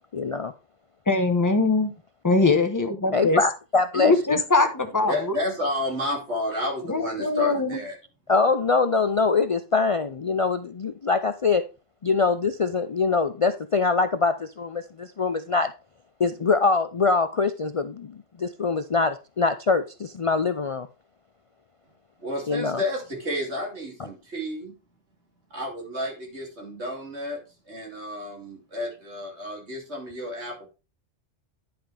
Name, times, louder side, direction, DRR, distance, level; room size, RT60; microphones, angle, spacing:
voice 1, 0.1-0.5 3.1-4.4 8.3-11.6 12.0-15.7 16.2-20.9 22.5-22.8, left 4 dB, 55° left, 0.3 m, -23 dB
voice 2, 1.1-1.9 2.2-3.4 3.9-5.3 6.9-7.8, left 3 dB, 15° left, 1.0 m, -22 dB
voice 3, 5.1-8.0 22.2-24.8 25.5-30.7, left 1 dB, 65° right, 3.2 m, -31 dB
10.5 x 5.8 x 3.4 m
omnidirectional pair, 1.2 m